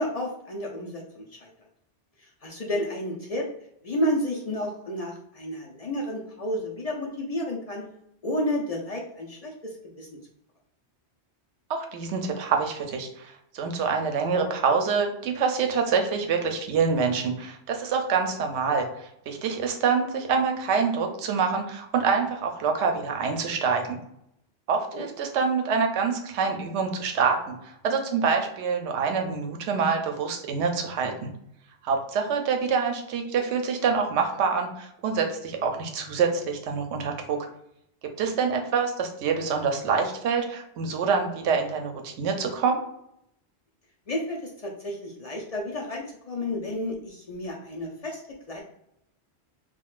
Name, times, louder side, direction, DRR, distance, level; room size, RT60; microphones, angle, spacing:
voice 1, 0.0-1.5 2.4-3.5 3.8-7.9 8.2-10.1 24.9-25.1 44.1-48.2 48.5-48.6, left 1 dB, 55° left, -1 dB, 0.4 m, -31 dB
voice 2, 11.7-24.0 24.7-31.3 31.8-37.4 38.2-42.8, right 5 dB, 75° right, 4 dB, 0.9 m, -26 dB
3.7 x 2.3 x 2.4 m, 0.76 s
omnidirectional pair, 1.2 m